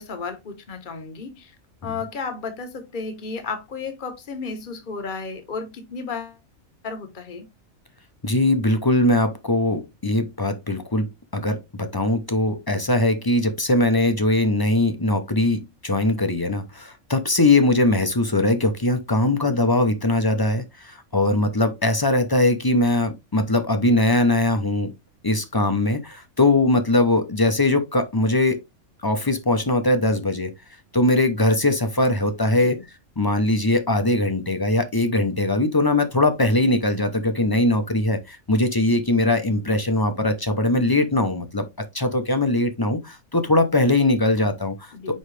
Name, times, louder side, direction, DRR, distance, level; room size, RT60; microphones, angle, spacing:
voice 1, 0.0-1.5 1.8-6.4 6.8-7.5 32.6-32.8 44.9-45.2, left 4 dB, 40° left, 1.2 m, -33 dB
voice 2, 8.2-24.9 25.2-28.6 29.0-30.5 30.9-32.8 33.2-41.6 41.9-45.2, left 2 dB, 20° left, 0.7 m, -21 dB
9.5 x 3.2 x 3.3 m
omnidirectional pair, 1.5 m